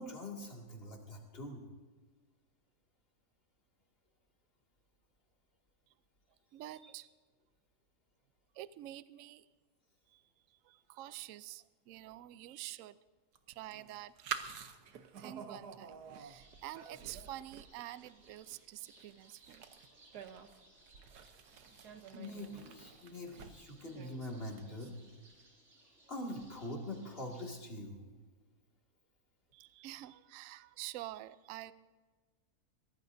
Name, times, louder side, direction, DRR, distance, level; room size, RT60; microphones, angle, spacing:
voice 1, 0.0-1.7 6.8-6.9 22.1-25.0 26.1-28.0, left 1 dB, 35° left, 0 dB, 2.4 m, -44 dB
voice 2, 6.5-7.1 8.5-9.5 10.1-13.0 13.5-14.1 15.2-19.7 29.5-31.7, right 15 dB, 70° right, 15 dB, 0.9 m, -48 dB
sound 1, 13.3-25.1, right 7 dB, 85° right, 1.5 m, -48 dB
sound 2, 16.2-27.6, right 2 dB, 45° right, 3.3 m, -65 dB
23.0 x 17.0 x 2.7 m, 1.4 s
omnidirectional pair, 1.7 m